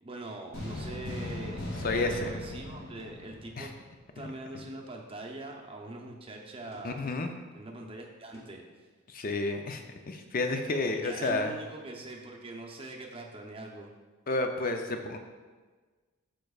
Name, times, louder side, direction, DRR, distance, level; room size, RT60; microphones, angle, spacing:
voice 1, 0.0-3.7 4.1-7.0 7.5-8.6 10.9-13.9, right 2 dB, 25° right, 1 dB, 0.7 m, -43 dB
sound 1, 0.5-4.0, left 1 dB, 65° left, 1.9 m, -38 dB
voice 2, 1.8-2.3 3.6-3.7 4.2-4.3 4.5-4.7 6.8-7.3 9.1-11.5 14.3-15.2, left 2 dB, 40° left, 5 dB, 0.5 m, -31 dB
sound 2, 3.0-4.0 6.7-7.3 8.3-8.4, right 1 dB, 15° left, 0.9 m, -53 dB
11.5 x 4.5 x 2.4 m, 1.4 s
head